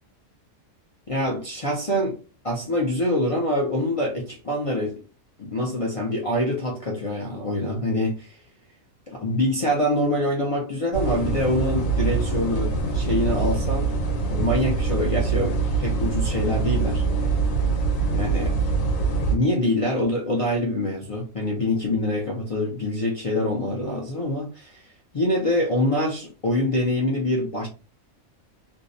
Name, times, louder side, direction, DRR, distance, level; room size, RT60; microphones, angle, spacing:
voice 1, 1.1-2.2 2.4-4.9 5.4-8.4 9.1-12.7 12.9-13.9 14.3-17.0 18.1-18.5 19.3-27.7, left 1 dB, 60° left, 0.3 m, -25 dB
sound 1, 10.9-19.3, right 4 dB, 90° left, 1.2 m, -24 dB
2.6 x 2.0 x 2.5 m
omnidirectional pair, 1.3 m